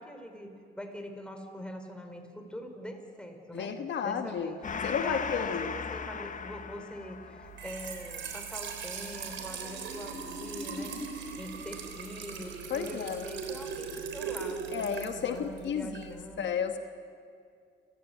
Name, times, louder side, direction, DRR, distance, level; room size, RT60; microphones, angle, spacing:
voice 1, 0.0-3.7 4.0-16.5, equal, 5° left, 4 dB, 4.3 m, -43 dB
voice 2, 3.5-4.5 4.8-5.7 12.7-13.3 14.7-16.8, left 7 dB, 65° left, 7 dB, 1.4 m, -33 dB
Gong, 4.6-11.6, left 6 dB, 40° left, 1.1 m, -39 dB
Trickle dribble / Fill (with liquid), 7.4-16.2, right 5 dB, 70° right, 3.6 m, -39 dB
29.5 x 15.0 x 9.0 m, 2.3 s
cardioid pair, 90°, 20 cm